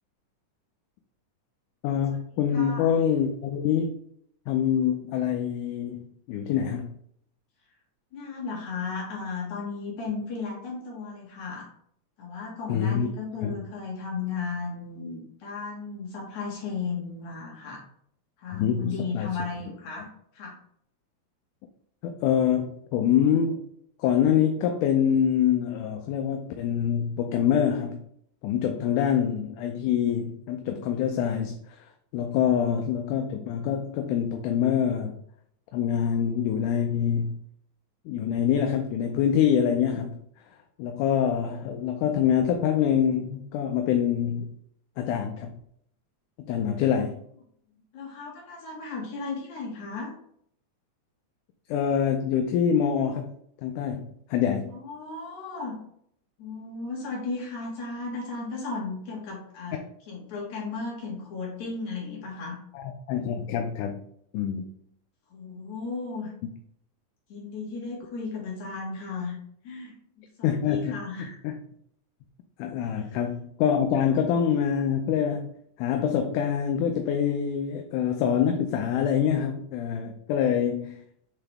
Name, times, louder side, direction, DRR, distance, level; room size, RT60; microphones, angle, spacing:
voice 1, 1.8-4.0 4.5-6.9 12.7-13.1 13.4-13.5 18.5-19.3 22.0-23.6 24.0-28.0 28.4-31.8 32.1-35.2 35.7-37.4 38.1-40.2 40.8-44.5 45.0-45.6 46.5-47.2 51.7-53.3 53.6-54.7 62.7-64.0 64.3-64.7 70.4-71.0 71.4-71.6 72.6-81.0, left 8 dB, 80° left, 4 dB, 2.0 m, -25 dB
voice 2, 2.5-2.9 8.1-11.7 12.2-17.8 18.4-20.1 20.3-20.5 36.0-36.1 47.9-50.1 54.7-55.8 56.4-62.6 65.3-66.3 67.3-69.4 69.6-70.0 70.4-71.4 72.9-73.1 74.1-74.2, left 4 dB, 65° left, -3 dB, 2.9 m, -35 dB
7.7 x 3.8 x 3.4 m, 0.68 s
omnidirectional pair, 3.8 m